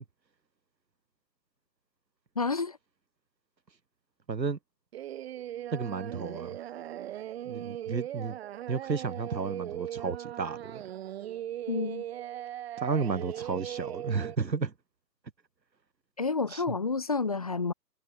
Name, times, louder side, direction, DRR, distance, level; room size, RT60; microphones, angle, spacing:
voice 1, 2.4-2.8 11.7-12.0 16.2-17.7, left 4 dB, 25° left, 0.5 m, -29 dB
voice 2, 4.3-4.6 5.7-6.6 7.5-8.4 8.7-10.8 12.8-14.7 16.5-16.6, right 5 dB, 85° right, 2.1 m, -32 dB
Singing, 4.9-14.4, right 12 dB, 40° right, 1.6 m, -39 dB
figure-of-eight pair, 135°, 50 cm